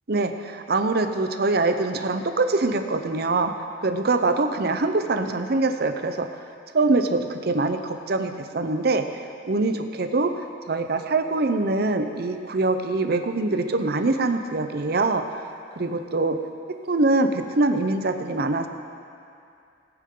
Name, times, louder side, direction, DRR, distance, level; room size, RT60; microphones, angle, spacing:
voice 1, 0.1-6.3 6.7-9.2 9.5-15.3 15.8-16.4 16.9-18.7, right 3 dB, 60° right, 7 dB, 0.8 m, -24 dB
19.5 x 9.0 x 3.8 m, 2.5 s
head